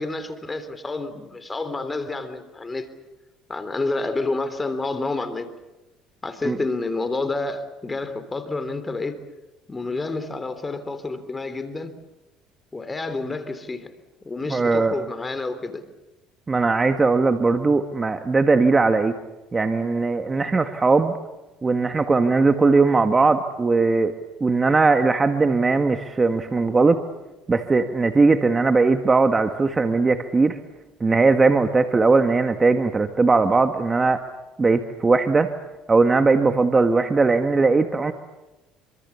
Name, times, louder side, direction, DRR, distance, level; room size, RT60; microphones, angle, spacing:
voice 1, 0.0-2.9 3.5-5.5 6.2-9.2 9.7-12.0 12.7-13.9 14.2-15.8, left 3 dB, 20° left, 11 dB, 3.4 m, -29 dB
voice 2, 14.5-15.0 16.5-19.1 19.5-21.1 21.6-24.1 24.4-27.0 27.5-30.6 31.0-34.2 34.6-35.5 35.9-38.1, right 3 dB, 25° right, 7 dB, 1.8 m, -19 dB
27.5 x 25.5 x 7.2 m, 1.0 s
supercardioid pair, 95°, 0 cm